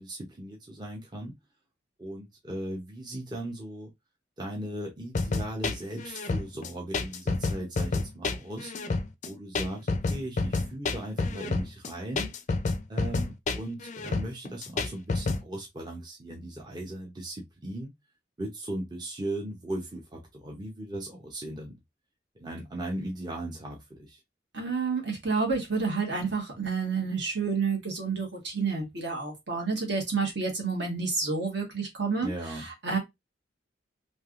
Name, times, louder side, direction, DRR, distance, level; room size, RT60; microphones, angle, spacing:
voice 1, 0.0-1.4 2.0-3.9 4.4-8.7 9.2-12.3 12.9-17.9 18.4-21.8 22.4-24.2 32.2-32.6, right 1 dB, 20° right, 0.6 m, -37 dB
sound 1, 5.2-15.4, left 3 dB, 40° left, 0.4 m, -29 dB
voice 2, 24.5-32.3 32.6-33.0, right 4 dB, 60° right, 1.3 m, -29 dB
3.3 x 2.7 x 2.4 m
head